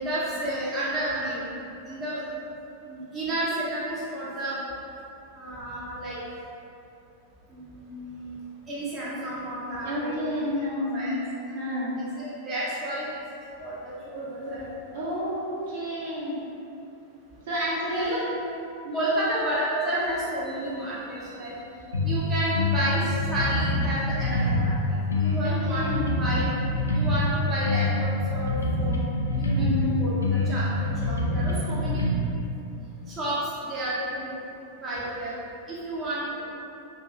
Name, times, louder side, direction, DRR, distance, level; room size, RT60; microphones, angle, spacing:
voice 1, 0.0-2.2 2.8-4.6 5.4-6.2 7.5-8.3 8.7-10.4 10.9-11.1 12.0-13.1 13.6-14.7 17.9-18.2 18.9-21.5 22.0-24.7 25.2-26.4 26.9-29.1 29.4-29.7 30.0-32.1 33.1-33.4 33.6-34.3 34.8-35.3 35.7-36.4, right 1 dB, 25° right, -8 dB, 0.5 m, -31 dB
voice 2, 9.8-11.1 11.5-11.9 14.9-16.3 17.5-18.2 18.8-19.1 25.4-26.1 29.5-29.9, left 1 dB, 60° right, -7 dB, 0.8 m, -30 dB
sound 1, 21.9-22.2 22.5-24.8 25.1-27.3 27.7-29.9 30.2-32.1, left 2 dB, 75° left, 0.3 m, -25 dB
2.6 x 2.3 x 2.9 m, 2.7 s
figure-of-eight pair, 90°, 0 cm